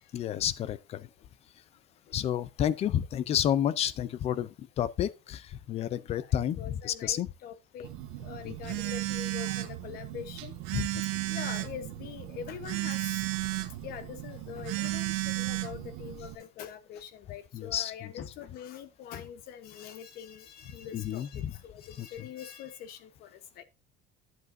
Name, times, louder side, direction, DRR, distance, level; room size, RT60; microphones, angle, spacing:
voice 1, 0.1-1.1 2.1-7.3 8.4-8.5 10.7-11.0 17.5-18.1 20.9-21.5 22.0-22.3, left 10 dB, 30° left, 0.5 m, -30 dB
voice 2, 6.1-7.9 8.2-10.5 11.3-13.2 13.8-23.6, left 9 dB, 50° left, 1.1 m, -44 dB
Telephone, 7.8-16.4, right 18 dB, 80° right, 1.2 m, -34 dB
12.0 x 8.2 x 2.6 m
cardioid pair, 170°, 20 cm